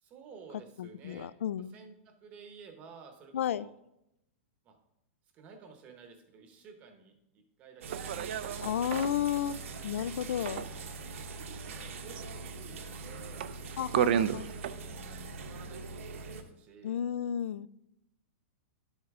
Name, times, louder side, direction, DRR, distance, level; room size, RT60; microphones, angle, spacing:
voice 1, 0.0-1.3 1.7-3.7 4.6-4.8 5.3-9.6 11.7-13.5 13.9-17.0, right 5 dB, 20° right, 5 dB, 0.9 m, -53 dB
voice 2, 0.8-1.7 3.3-3.7 8.6-9.6 9.8-10.6 13.8-14.4 16.8-17.7, left 9 dB, 75° left, 18 dB, 0.4 m, -32 dB
sound 1, 7.8-14.7, right 9 dB, 45° right, 0.4 m, -35 dB
sound 2, 7.8-16.4, right 3 dB, 75° right, 1.2 m, -43 dB
10.5 x 8.0 x 3.6 m, 0.83 s
supercardioid pair, 180°, 7 cm